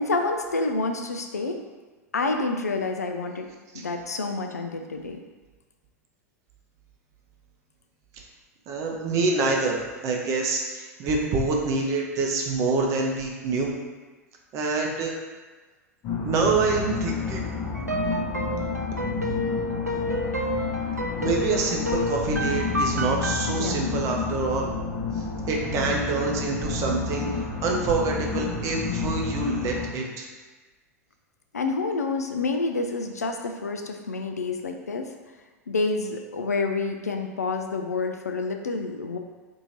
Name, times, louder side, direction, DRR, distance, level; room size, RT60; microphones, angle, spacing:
voice 1, 0.0-1.6 2.1-3.5 3.7-5.2 23.5-23.9 31.5-35.1 35.7-39.2, left 3 dB, 80° left, 4 dB, 0.4 m, -28 dB
voice 2, 8.7-13.7 14.5-15.1 16.2-17.5 21.2-24.7 25.5-27.3 27.6-30.2, right 4 dB, 40° right, 0 dB, 0.7 m, -26 dB
sound 1, 16.0-29.9, left 5 dB, 40° left, 0.9 m, -30 dB
sound 2, 17.7-23.5, equal, 90° right, 0.4 m, -30 dB
2.8 x 2.7 x 4.2 m, 1.3 s
figure-of-eight pair, 85°, 8 cm